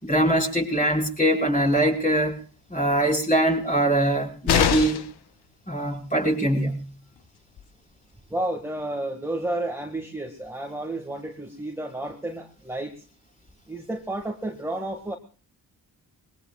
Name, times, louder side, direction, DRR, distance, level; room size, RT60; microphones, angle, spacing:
voice 1, 0.0-2.4 2.7-5.0 5.7-6.8, right 1 dB, 20° left, -1 dB, 5.4 m, -22 dB
sound 1, 4.5-5.2 7.2-7.3 7.6-7.7, left 9 dB, 90° left, 1.2 m, -23 dB
voice 2, 8.3-13.0 13.7-15.2, right 1 dB, 5° right, 1 dB, 1.9 m, -31 dB
26.5 x 22.0 x 2.4 m, 0.39 s
wide cardioid pair, 125°, 38 cm